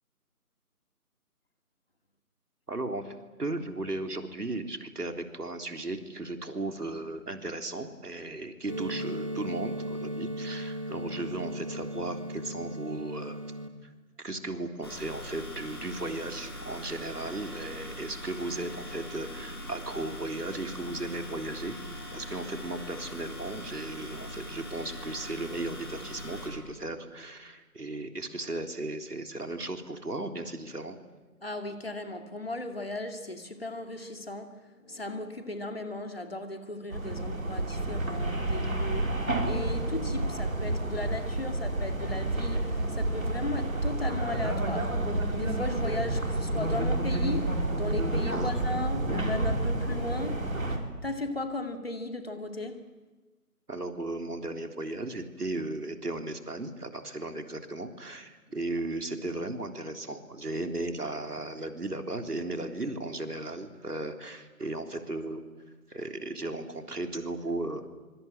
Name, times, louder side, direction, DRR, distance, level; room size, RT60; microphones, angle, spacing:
voice 1, 2.7-13.4 14.2-21.8 22.1-31.0 48.1-48.6 53.7-65.4 65.9-67.9, right 2 dB, 75° right, 3.7 m, -36 dB
sound 1, 8.7-13.7, equal, 20° right, 1.6 m, -36 dB
sound 2, 14.8-26.5, equal, 15° left, 2.8 m, -41 dB
voice 2, 31.4-34.6 34.8-45.0 45.3-50.5 51.0-52.8, left 2 dB, 40° left, 2.5 m, -36 dB
sound 3, 36.9-50.8, right 1 dB, 60° right, 4.9 m, -29 dB
25.5 x 24.5 x 8.9 m
figure-of-eight pair, 175°, 47 cm